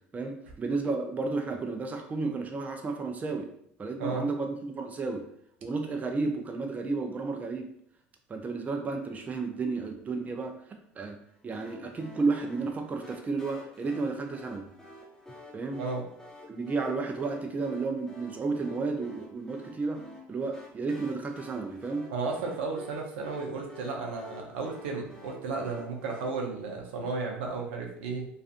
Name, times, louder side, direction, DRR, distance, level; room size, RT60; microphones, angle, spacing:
voice 1, 0.1-3.5 3.8-5.3 5.6-7.7 8.3-10.6 11.0-11.2 11.4-14.7 15.5-15.8 16.5-20.0 20.3-22.1, right 3 dB, 25° right, 4 dB, 0.4 m, -32 dB
sound 1, 11.5-26.3, left 1 dB, 10° left, 1.0 m, -50 dB
voice 2, 22.1-28.3, right 4 dB, 85° right, 0 dB, 0.5 m, -34 dB
2.4 x 2.4 x 2.4 m, 0.69 s
hypercardioid pair, 80°, 6 cm